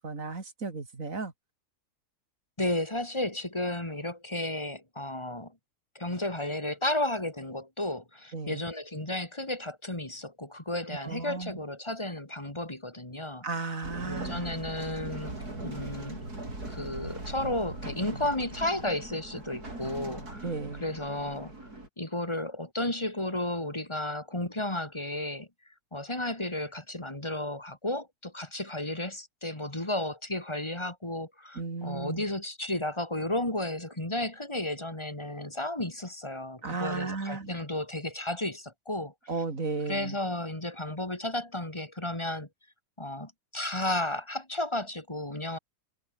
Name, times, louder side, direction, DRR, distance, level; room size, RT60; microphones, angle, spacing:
voice 1, 0.0-1.3 8.3-8.6 10.9-11.5 13.4-14.5 20.4-20.9 31.6-32.2 36.6-37.6 39.3-40.2, right 4 dB, 55° right, 3.5 m, -34 dB
voice 2, 2.6-5.5 5.9-13.5 14.0-16.2 16.7-21.5 22.0-25.5 25.9-39.1 39.9-42.5 43.0-45.6, left 1 dB, 15° left, 3.2 m, -33 dB
sound 1, 13.8-21.9, right 2 dB, 70° right, 8.0 m, -40 dB
omnidirectional pair, 1.7 m